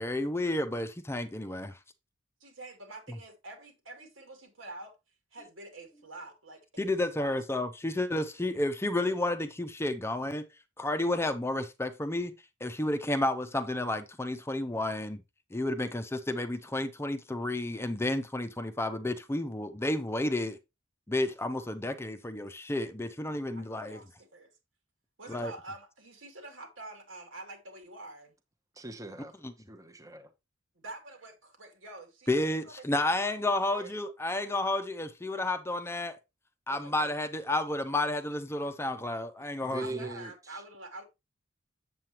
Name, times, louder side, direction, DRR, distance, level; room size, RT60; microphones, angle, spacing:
voice 1, 0.0-1.8 6.8-10.5 10.8-12.3 12.6-15.2 15.5-20.6 21.1-24.0 25.3-25.5 29.4-29.5 32.3-36.2 36.7-39.8, left 1 dB, 15° left, 0.6 m, -31 dB
voice 2, 2.4-4.9 5.3-7.4 22.4-22.5 23.5-24.5 25.2-28.3 30.7-32.3 32.6-33.9 36.7-37.1 39.8-41.0, right 2 dB, 90° right, 2.6 m, -47 dB
voice 3, 28.8-29.4 29.7-30.3 39.6-40.6, right 2 dB, 15° right, 0.9 m, -41 dB
7.7 x 7.5 x 3.0 m
head